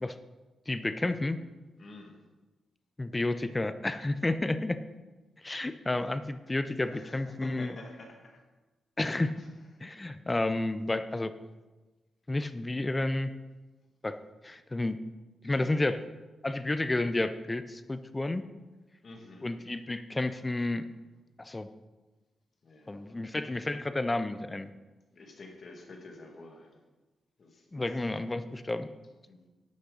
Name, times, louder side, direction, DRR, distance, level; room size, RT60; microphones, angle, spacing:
voice 1, 0.7-1.4 3.0-4.8 5.4-7.8 9.0-9.3 9.8-11.3 12.3-13.3 14.0-15.0 15.4-16.0 16.4-18.4 19.4-20.8 21.4-21.7 22.9-24.7 27.7-28.9, left 2 dB, 15° left, 11 dB, 0.5 m, -31 dB
voice 2, 1.8-2.2 6.8-8.3 9.4-9.5 15.5-15.9 19.0-19.7 22.6-23.2 25.1-26.8 27.4-27.8 29.3-29.5, left 2 dB, 50° left, 2 dB, 1.9 m, -49 dB
12.0 x 8.5 x 3.9 m, 1.2 s
cardioid pair, 115°, 0 cm